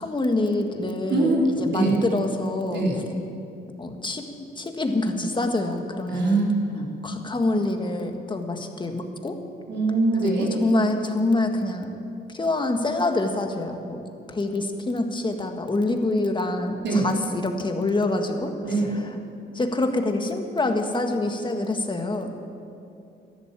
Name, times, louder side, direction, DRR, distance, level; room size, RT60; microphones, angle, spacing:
voice 1, 0.0-1.3 1.6-2.8 3.8-4.2 4.6-6.4 7.0-9.3 10.1-11.9 12.3-14.0 14.3-19.1 19.5-22.3, left 2 dB, 25° left, 5 dB, 1.7 m, -26 dB
voice 2, 1.1-1.9 2.7-3.0 6.1-6.4 6.7-6.9 9.7-10.5 16.8-17.1 18.6-18.9, right 2 dB, 65° right, -2 dB, 4.1 m, -23 dB
13.0 x 11.5 x 8.9 m, 2.6 s
cardioid pair, 90°, 20 cm